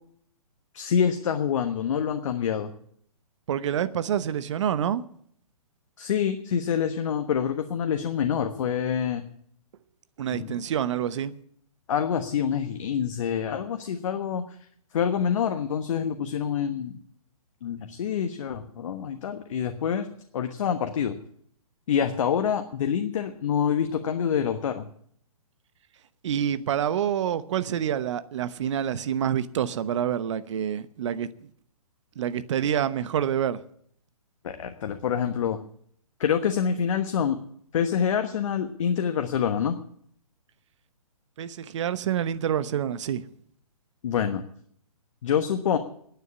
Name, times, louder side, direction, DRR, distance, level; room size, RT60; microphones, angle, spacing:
voice 1, 0.7-2.7 6.0-9.2 10.3-10.6 11.9-14.6 14.9-17.0 17.6-20.1 20.3-21.2 21.9-24.9 34.4-35.6 36.2-37.4 37.7-39.8 44.0-44.4 45.2-45.8, left 8 dB, 55° left, 1.2 m, -26 dB
voice 2, 3.5-5.0 10.2-11.3 26.2-31.3 32.2-33.6 41.4-43.2, right 9 dB, 50° right, 0.9 m, -27 dB
11.0 x 9.4 x 9.7 m
hypercardioid pair, 130°, 19 cm